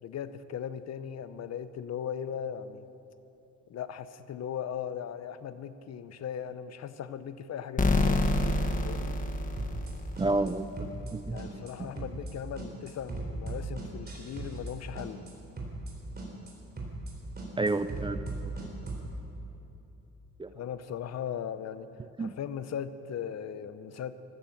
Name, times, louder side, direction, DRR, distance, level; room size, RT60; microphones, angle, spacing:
voice 1, 0.0-2.9 3.7-9.2 11.3-15.2 16.1-16.2 17.6-17.7 20.5-21.9 22.2-24.2, left 8 dB, 60° left, 13 dB, 0.8 m, -38 dB
sound 1, 7.8-10.5, left 2 dB, 25° left, 1.5 m, -27 dB
sound 2, 9.6-9.9 10.2-10.5 10.8-11.1 11.4-11.7 12.0-12.3 12.6-14.7 15.0-15.3 15.6-15.9 16.2-16.5 16.8-17.1 17.4-19.1, right 3 dB, 30° right, 4.0 m, -38 dB
voice 2, 10.2-11.9 17.6-18.5 20.4-20.5 22.2-22.3, right 2 dB, 15° right, 12 dB, 0.5 m, -31 dB
15.0 x 13.0 x 7.2 m, 2.9 s
cardioid pair, 90°, 30 cm